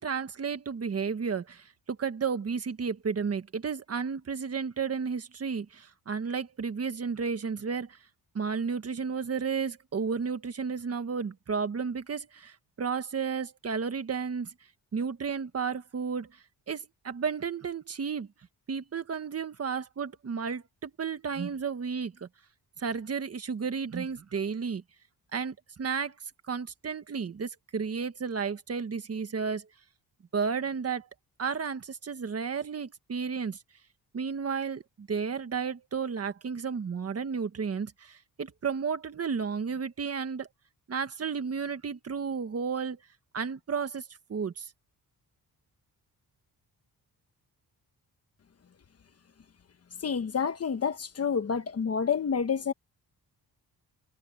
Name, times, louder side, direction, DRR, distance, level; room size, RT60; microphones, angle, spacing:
voice 1, 0.0-8.0 8.3-14.5 14.9-18.3 18.7-22.3 22.8-24.8 25.3-26.1 26.5-29.7 30.3-31.1 31.4-33.6 34.1-40.5 40.9-43.0 43.3-44.0 44.3-44.7, right 6 dB, 40° right, 1.5 m, -32 dB
voice 2, 50.0-52.7, left 6 dB, 40° left, 1.2 m, -28 dB
wide cardioid pair, 150°, 39 cm